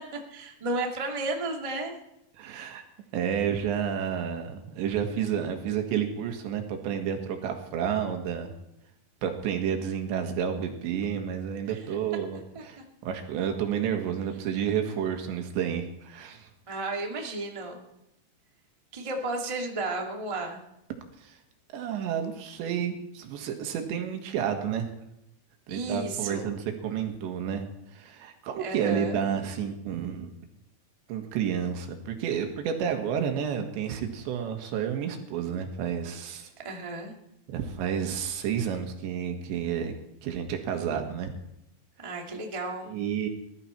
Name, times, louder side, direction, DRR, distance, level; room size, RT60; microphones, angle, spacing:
voice 1, 0.0-2.0 11.7-11.8 12.5-12.8 16.7-17.8 18.9-20.6 25.7-26.6 28.6-29.2 36.6-37.1 42.0-42.9, right 2 dB, 60° right, 1 dB, 0.3 m, -33 dB
voice 2, 2.4-2.8 3.1-8.5 9.2-16.5 21.2-21.4 21.7-24.9 25.7-27.6 27.9-30.4 31.1-36.5 37.5-39.9 40.2-41.3 42.9-43.3, right 8 dB, 85° right, 5 dB, 3.9 m, -30 dB
20.0 x 13.0 x 4.4 m, 0.83 s
omnidirectional pair, 5.0 m